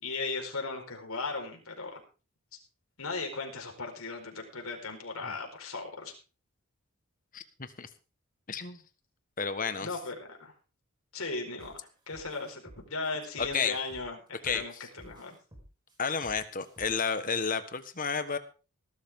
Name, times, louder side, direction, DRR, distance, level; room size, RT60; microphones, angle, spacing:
voice 1, 0.0-2.0 3.0-6.1 9.8-10.5 11.1-11.8 12.1-15.3, left 3 dB, 75° left, 2 dB, 4.7 m, -37 dB
voice 2, 7.3-7.9 8.5-8.8 9.4-9.9 13.4-13.8 14.4-14.8 16.0-18.4, left 5 dB, 40° left, 10 dB, 1.4 m, -31 dB
sound 1, 11.6-11.8 12.1-14.6 15.0-17.1, equal, 20° right, 4.9 m, -53 dB
19.0 x 12.0 x 3.7 m, 0.35 s
head